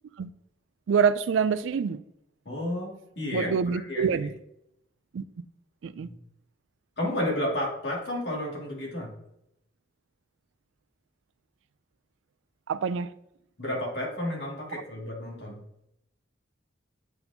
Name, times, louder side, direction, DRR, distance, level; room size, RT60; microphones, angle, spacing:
voice 1, 0.9-2.0 3.3-4.3 5.1-5.2 5.8-6.1 12.7-13.1, right 6 dB, 75° right, 0.3 m, -26 dB
voice 2, 2.5-4.2 6.0-6.2 7.0-9.1 13.6-15.6, left 1 dB, 60° left, 2.1 m, -32 dB
8.3 x 4.4 x 2.7 m
head